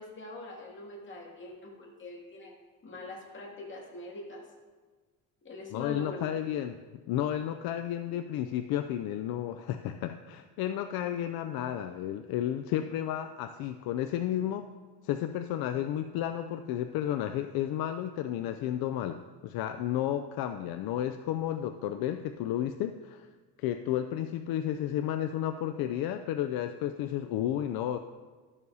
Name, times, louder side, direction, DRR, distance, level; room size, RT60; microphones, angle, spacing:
voice 1, 0.0-2.5 2.8-4.4 5.4-6.3, left 2 dB, 30° left, -3 dB, 2.3 m, -43 dB
voice 2, 5.7-6.8 7.1-14.7 15.0-23.3 23.6-28.0, left 11 dB, 65° left, 8 dB, 0.5 m, -32 dB
12.5 x 6.9 x 2.7 m, 1.4 s
cardioid pair, 120°, 39 cm